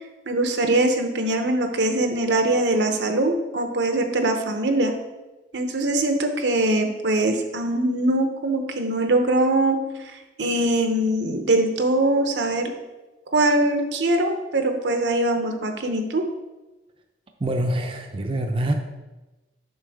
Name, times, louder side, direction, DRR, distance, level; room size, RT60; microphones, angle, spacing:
voice 1, 0.3-4.9 5.5-9.8 10.4-12.7 13.3-16.2, right 2 dB, 80° right, 5 dB, 0.8 m, -22 dB
voice 2, 17.4-18.7, right 1 dB, 30° right, 4 dB, 0.5 m, -25 dB
7.3 x 5.5 x 3.5 m, 1.1 s
head